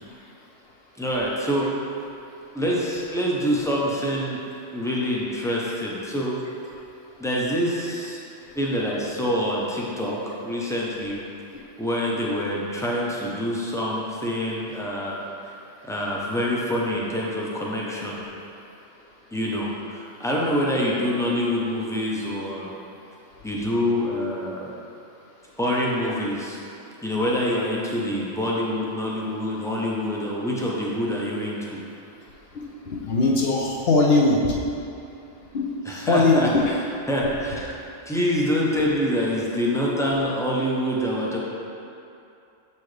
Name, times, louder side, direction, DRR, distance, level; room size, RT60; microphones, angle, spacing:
voice 1, 1.0-1.7 2.5-4.4 4.7-6.4 7.2-8.2 8.5-11.2 11.8-15.5 15.9-18.2 19.3-22.7 23.4-24.7 25.6-26.6 27.0-31.8 35.9-36.5 37.1-37.6 38.1-41.4, equal, 5° left, -5 dB, 0.4 m, -26 dB
voice 2, 32.5-34.7 35.5-36.7 37.2-37.3, left 3 dB, 60° left, -2 dB, 0.8 m, -21 dB
6.8 x 4.4 x 3.2 m, 2.7 s
omnidirectional pair, 1.3 m